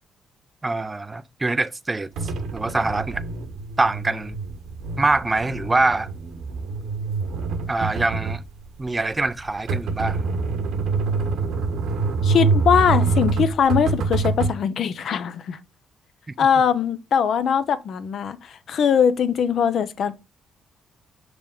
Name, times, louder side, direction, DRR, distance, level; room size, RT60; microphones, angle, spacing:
voice 1, 0.6-2.1 2.5-3.2 3.8-4.4 5.0-6.1 7.7-8.4 8.8-10.2, right 2 dB, 20° right, 0.4 m, -24 dB
sound 1, 2.2-14.5, right 4 dB, 80° right, 1.2 m, -26 dB
voice 2, 12.2-15.6 16.4-20.1, left 7 dB, 65° left, 0.7 m, -21 dB
6.1 x 5.1 x 3.6 m
cardioid pair, 90°, 0 cm